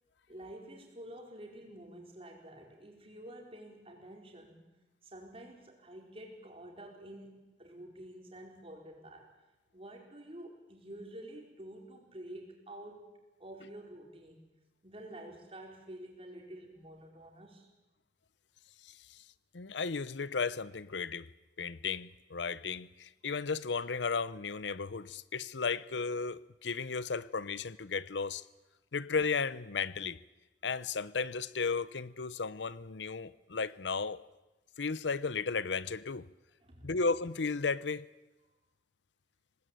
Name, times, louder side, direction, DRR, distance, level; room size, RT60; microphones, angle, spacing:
voice 1, 0.3-4.6 5.0-9.3 9.7-14.4 14.8-17.7 36.6-36.9, right 1 dB, 35° right, 4.8 m, -49 dB
voice 2, 18.8-19.2 19.5-21.3 21.6-28.4 28.9-30.2 30.6-34.2 34.8-36.3 36.8-38.1, left 5 dB, 90° left, 0.8 m, -34 dB
24.5 x 19.0 x 9.2 m
head